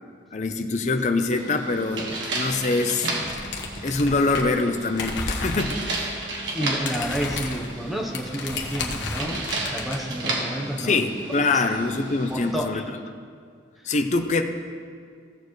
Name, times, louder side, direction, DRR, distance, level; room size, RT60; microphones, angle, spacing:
voice 1, 0.3-3.1 3.8-6.2 10.8-12.8 13.8-14.4, left 3 dB, 40° left, 6 dB, 0.6 m, -24 dB
sound 1, 1.3-12.5, right 2 dB, 90° right, 1.4 m, -33 dB
sound 2, 3.2-4.6 4.9-5.8 6.2-6.4 6.6-10.0, left 3 dB, 85° left, 1.1 m, -32 dB
voice 2, 6.5-11.0 11.5-11.6 12.3-12.8, equal, ahead, -2 dB, 0.9 m, -30 dB
16.0 x 6.8 x 3.2 m, 2.1 s
head